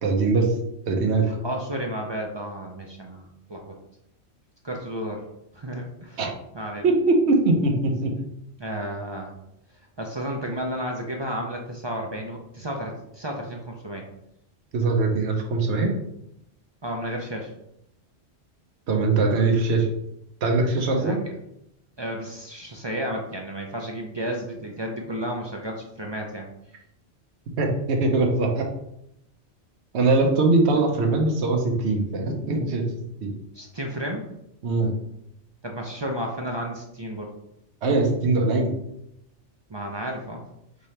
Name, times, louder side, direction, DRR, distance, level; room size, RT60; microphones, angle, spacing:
voice 1, 0.0-0.5 0.8-1.3 6.2-6.3 6.8-8.1 14.7-15.9 18.9-19.9 20.4-21.2 27.6-28.6 29.9-32.8 33.2-33.3 34.6-34.9 37.8-38.7, right 3 dB, 70° right, 2 dB, 1.1 m, -21 dB
voice 2, 1.2-3.7 4.6-5.2 5.5-6.2 6.5-6.9 8.6-9.3 10.0-14.1 16.8-17.5 21.0-21.3 22.0-26.5 33.5-34.2 35.6-37.3 39.7-40.4, equal, 40° right, 0 dB, 0.4 m, -32 dB
5.2 x 2.8 x 3.2 m, 0.80 s
omnidirectional pair, 1.2 m